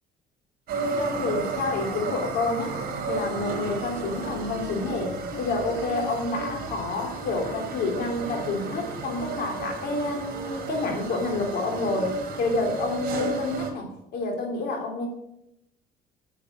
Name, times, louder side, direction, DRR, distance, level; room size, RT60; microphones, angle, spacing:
sound 1, 0.7-13.7, right 3 dB, 60° right, 3.5 m, -33 dB
voice 1, 1.0-2.8 3.1-15.1, left 3 dB, 70° left, 2 dB, 3.4 m, -29 dB
8.3 x 8.3 x 8.1 m, 0.81 s
cardioid pair, 110°, 17 cm